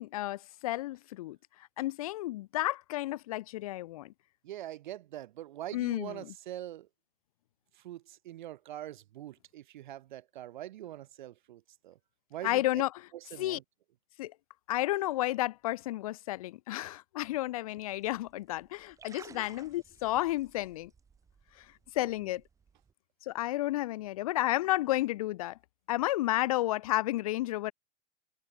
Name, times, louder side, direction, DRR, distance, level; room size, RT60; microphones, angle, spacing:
voice 1, 0.0-1.4 1.8-4.1 5.7-6.3 12.4-13.0 13.4-13.6 14.2-14.3 14.7-20.9 21.9-22.4 23.3-25.6 25.9-27.7, left 16 dB, 35° left, 0.6 m, -32 dB
voice 2, 4.4-6.9 7.7-12.0 12.3-12.6 13.1-13.6, right 13 dB, 45° right, 0.5 m, -43 dB
sound 1, 17.9-22.9, right 6 dB, 10° right, 4.3 m, -57 dB
supercardioid pair, 175°, 33 cm